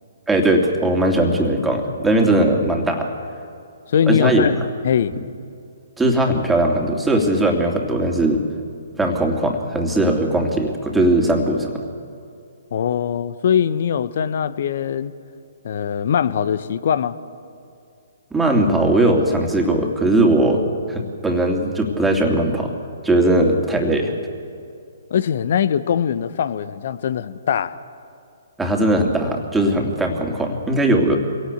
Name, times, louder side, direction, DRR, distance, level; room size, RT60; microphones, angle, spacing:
voice 1, 0.3-3.1 4.1-4.4 5.1-5.2 6.0-8.4 9.0-11.8 18.3-20.6 20.9-22.7 23.0-24.1 28.6-31.2, right 1 dB, 5° right, 1 dB, 2.8 m, -19 dB
voice 2, 3.9-4.6 4.8-5.1 12.7-15.1 15.6-17.2 25.1-27.8, left 8 dB, 55° left, 14 dB, 1.0 m, -21 dB
25.0 x 17.5 x 8.2 m, 2.4 s
figure-of-eight pair, 130°, 0 cm